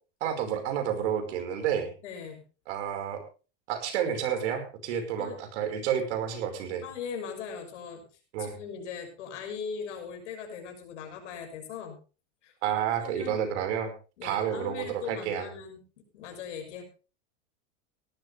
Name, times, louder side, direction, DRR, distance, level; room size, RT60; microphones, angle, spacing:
voice 1, 0.2-1.9 2.7-3.2 3.7-6.8 8.3-8.6 12.6-13.9 14.2-15.5, right 9 dB, 70° right, 6 dB, 5.3 m, -30 dB
voice 2, 2.0-2.4 5.2-5.4 6.8-8.0 8.4-12.0 12.4-12.5 13.0-13.4 14.2-15.8 16.1-16.8, left 6 dB, 75° left, 4 dB, 6.1 m, -39 dB
18.0 x 12.5 x 3.5 m, 0.34 s
supercardioid pair, 125°, 36 cm